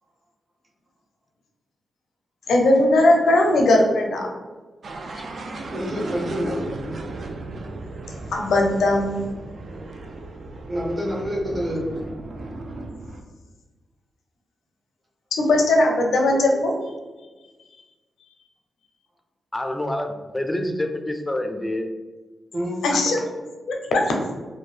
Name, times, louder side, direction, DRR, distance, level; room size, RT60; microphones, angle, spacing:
voice 1, 2.5-4.3 8.3-9.2 15.3-16.7 22.8-23.2 23.7-24.1, left 2 dB, 85° left, 1 dB, 0.5 m, -19 dB
sound 1, 4.8-13.2, right 2 dB, 65° right, 0.3 m, -35 dB
voice 2, 5.7-6.7 10.7-12.0 22.5-22.8, equal, 40° right, -5 dB, 1.0 m, -27 dB
voice 3, 16.3-16.6 19.5-21.9 22.9-23.1, left 1 dB, 20° left, 6 dB, 0.4 m, -28 dB
2.6 x 2.1 x 3.2 m, 1.3 s
cardioid pair, 55°, 0 cm